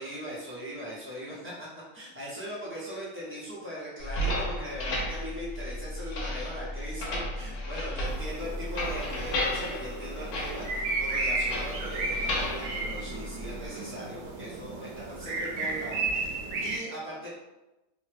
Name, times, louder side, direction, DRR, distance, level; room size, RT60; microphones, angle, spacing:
voice 1, 0.0-1.7 1.9-17.3, equal, 10° right, -8 dB, 0.6 m, -39 dB
sound 1, 4.0-13.7, left 1 dB, 85° left, 1.2 m, -34 dB
sound 2, 8.1-16.8, right 3 dB, 85° right, 1.1 m, -34 dB
3.0 x 2.1 x 3.3 m, 1.0 s
omnidirectional pair, 1.5 m